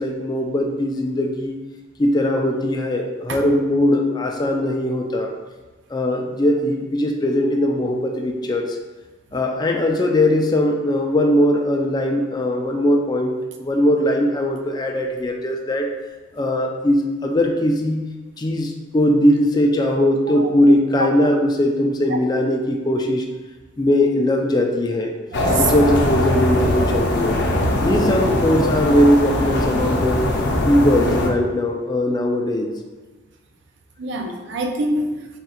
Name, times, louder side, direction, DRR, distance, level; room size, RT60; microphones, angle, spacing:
voice 1, 0.0-1.6 2.0-5.3 5.9-8.8 9.3-15.9 16.4-18.0 18.4-23.3 23.8-25.1 25.6-27.4 27.8-30.2 30.7-32.7, left 1 dB, 20° left, 2 dB, 0.3 m, -20 dB
sound 1, 25.3-31.3, left 1 dB, 60° left, 0.6 m, -21 dB
voice 2, 25.3-25.7 27.7-27.9 34.0-35.1, right 2 dB, 65° right, 4 dB, 0.5 m, -25 dB
3.6 x 2.3 x 4.2 m, 1.3 s
head